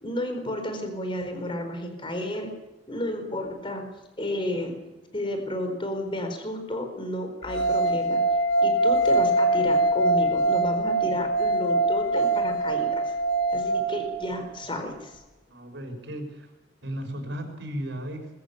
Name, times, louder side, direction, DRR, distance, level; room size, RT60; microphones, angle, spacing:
voice 1, 0.0-2.5 2.9-3.8 4.2-4.8 5.1-8.2 8.6-13.1 13.5-15.2, left 1 dB, 25° left, 6 dB, 4.5 m, -32 dB
sound 1, 7.5-14.6, right 2 dB, 85° left, 3.2 m, -23 dB
voice 2, 15.5-16.3 16.8-18.3, equal, 65° right, 4 dB, 5.7 m, -35 dB
22.0 x 14.0 x 8.7 m, 1.1 s
head